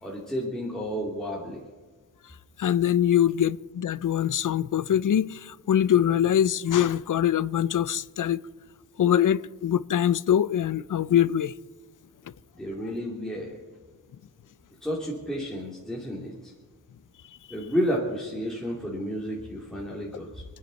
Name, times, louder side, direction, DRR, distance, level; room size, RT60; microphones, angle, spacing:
voice 1, 0.0-1.6 12.5-13.6 14.8-16.5 17.5-20.4, equal, ahead, 2.9 m, -31 dB
voice 2, 2.6-8.4 9.0-11.5, left 10 dB, 65° left, 0.6 m, -23 dB
28.5 x 9.7 x 4.1 m
wide cardioid pair, 90°, 34 cm